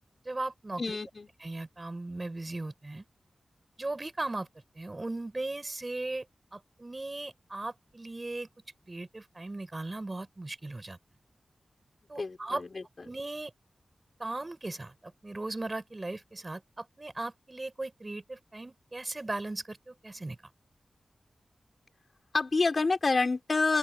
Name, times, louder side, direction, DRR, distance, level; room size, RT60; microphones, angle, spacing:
voice 1, 0.3-0.8 1.4-3.0 3.8-4.5 4.8-6.3 6.5-8.5 8.9-11.0 12.1-12.6 13.1-13.5 14.2-14.9 15.2-20.4, right 2 dB, 30° right, 5.3 m, -37 dB
voice 2, 0.8-1.3 12.2-13.1 22.3-23.8, left 3 dB, 45° left, 5.9 m, -28 dB
open air
wide cardioid pair, 95°, 0 cm